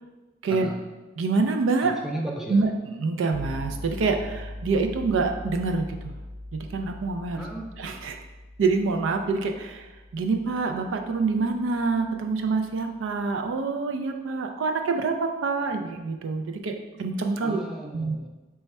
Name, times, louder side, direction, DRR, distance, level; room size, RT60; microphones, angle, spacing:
voice 1, 0.5-0.8 1.8-2.7 7.3-7.7 17.4-18.3, right 1 dB, ahead, -1 dB, 0.3 m, -35 dB
voice 2, 1.2-2.0 2.5-6.2 6.5-7.4 7.8-8.2 8.6-9.9 10.1-17.6 17.9-18.2, right 4 dB, 75° right, 5 dB, 0.4 m, -26 dB
sound 1, 3.3-13.2, left 1 dB, 45° right, 0.8 m, -41 dB
3.3 x 2.3 x 4.1 m, 1.2 s
head